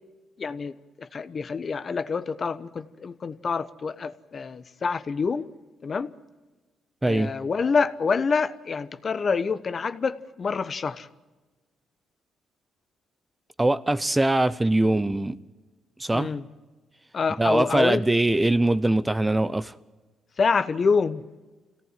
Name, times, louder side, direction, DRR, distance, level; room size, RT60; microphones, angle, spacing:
voice 1, 0.4-5.5 5.8-6.1 7.0-11.1 16.1-16.4 17.1-18.1 20.4-21.2, left 5 dB, 40° left, 1.0 m, -27 dB
voice 2, 13.6-15.4 16.0-16.3 17.4-19.7, right 2 dB, 15° right, 0.7 m, -22 dB
26.0 x 17.5 x 7.5 m
cardioid pair, 90°, 0 cm